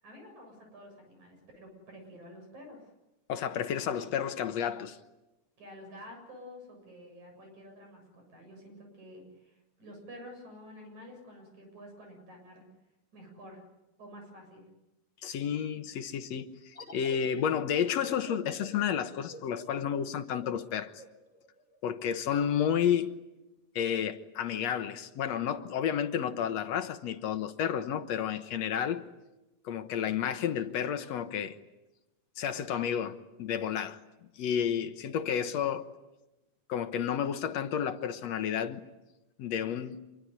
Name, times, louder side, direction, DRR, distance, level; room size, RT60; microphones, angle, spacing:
voice 1, 0.0-2.9 5.6-12.7 13.1-13.6 14.0-14.6, equal, 60° right, 8.7 m, -50 dB
voice 2, 3.3-5.0 15.2-21.0 21.8-23.1 23.8-29.0 29.6-31.6 32.4-34.0 34.4-35.9 36.7-38.8 39.4-40.0, left 8 dB, 60° left, 2.1 m, -31 dB
sound 1, 16.8-22.1, equal, 20° left, 4.3 m, -50 dB
26.5 x 23.5 x 9.6 m
omnidirectional pair, 3.8 m